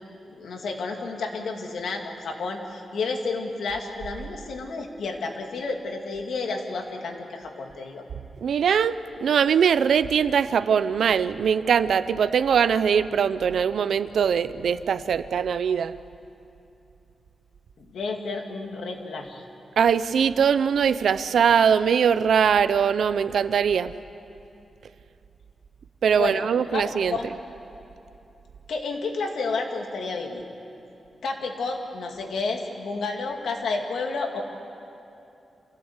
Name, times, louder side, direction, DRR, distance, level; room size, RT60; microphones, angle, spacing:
voice 1, 0.3-8.1 17.8-19.4 26.2-26.8 27.1-27.4 28.7-30.4 31.2-34.4, left 3 dB, 85° left, 2 dB, 2.4 m, -31 dB
voice 2, 8.4-16.0 19.8-23.9 26.0-27.2, right 7 dB, 75° right, 14 dB, 0.6 m, -21 dB
27.0 x 16.0 x 8.2 m, 2.8 s
wide cardioid pair, 165°, 0 cm